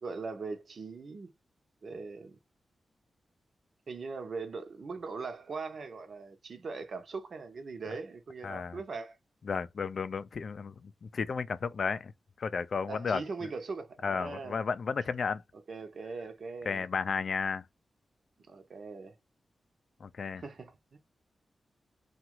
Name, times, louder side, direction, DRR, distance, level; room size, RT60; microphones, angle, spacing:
voice 1, 0.0-1.3 1.8-2.4 3.9-9.2 12.9-14.6 15.7-16.8 18.5-19.2 20.4-21.0, right 4 dB, 55° right, 0.7 m, -40 dB
voice 2, 8.4-8.8 9.4-12.1 12.4-13.2 14.0-15.4 16.7-17.7 20.0-20.4, left 5 dB, 60° left, 0.3 m, -33 dB
2.9 x 2.3 x 2.9 m
wide cardioid pair, 135°, 0 cm